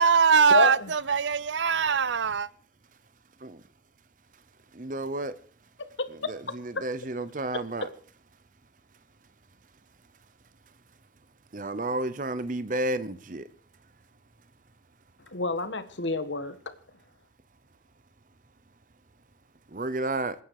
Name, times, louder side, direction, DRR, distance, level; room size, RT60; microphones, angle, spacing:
voice 1, 0.0-2.5, right 6 dB, 85° right, 0.7 m, -22 dB
voice 2, 4.7-5.3 6.3-7.9 11.5-13.5 19.7-20.4, right 2 dB, 45° right, 0.8 m, -31 dB
voice 3, 5.8-6.3 6.7-6.8 7.5-7.6 15.3-16.6, left 3 dB, 85° left, 1.6 m, -28 dB
27.5 x 9.5 x 4.8 m
head